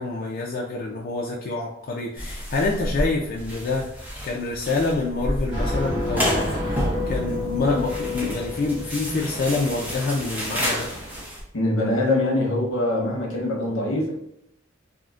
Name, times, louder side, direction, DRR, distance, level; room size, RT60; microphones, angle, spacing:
voice 1, 0.0-10.9, left 3 dB, 45° left, -2 dB, 0.4 m, -27 dB
Toilet roll unraveling bathroom, 2.2-11.4, equal, 10° right, 0.6 m, -30 dB
sound 1, 5.5-11.2, left 2 dB, 70° right, 1.1 m, -31 dB
voice 2, 11.5-14.1, left 1 dB, 75° left, -2 dB, 0.9 m, -23 dB
3.7 x 2.1 x 2.4 m, 0.75 s
head